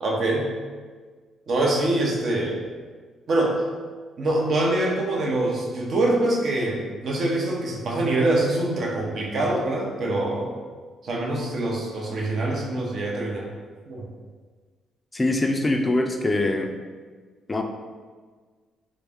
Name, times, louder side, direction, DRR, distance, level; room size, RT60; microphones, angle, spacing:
voice 1, 0.0-0.5 1.5-2.6 3.3-3.6 4.2-10.5 11.0-13.5 13.9-14.0, right 2 dB, 55° right, -2 dB, 0.7 m, -24 dB
voice 2, 15.1-16.7 17.5-17.6, left 2 dB, 20° left, 4 dB, 0.4 m, -23 dB
3.0 x 2.5 x 3.5 m, 1.5 s
cardioid pair, 90°, 0 cm